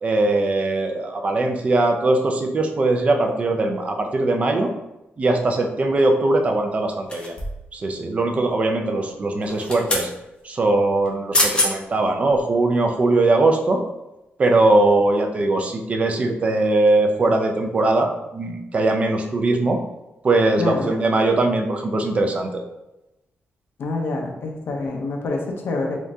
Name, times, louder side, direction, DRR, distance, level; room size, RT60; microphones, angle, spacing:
voice 1, 0.0-4.7 5.2-7.4 7.7-10.1 10.4-13.8 14.4-19.8 20.2-22.6, right 2 dB, 30° right, 4 dB, 0.4 m, -20 dB
sound 1, 7.1-7.7 9.4-10.1 11.1-11.2 11.3-11.7 12.3-12.4, left 1 dB, 25° left, 0.8 m, -23 dB
voice 2, 20.6-20.9 23.8-26.0, left 3 dB, 65° left, 1 dB, 0.6 m, -26 dB
3.6 x 3.5 x 2.6 m, 0.94 s
wide cardioid pair, 175°, 4 cm